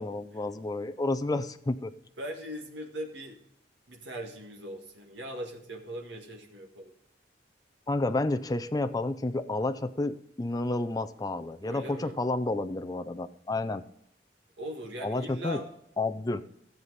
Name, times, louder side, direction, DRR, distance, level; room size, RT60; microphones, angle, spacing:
voice 1, 0.0-1.9 7.9-13.8 15.0-15.6 16.0-16.4, left 2 dB, 20° left, 10 dB, 0.5 m, -30 dB
voice 2, 2.2-3.4 3.9-6.9 11.6-12.2 14.6-15.7, equal, 75° right, 1 dB, 1.8 m, -40 dB
14.0 x 7.5 x 4.0 m, 0.74 s
head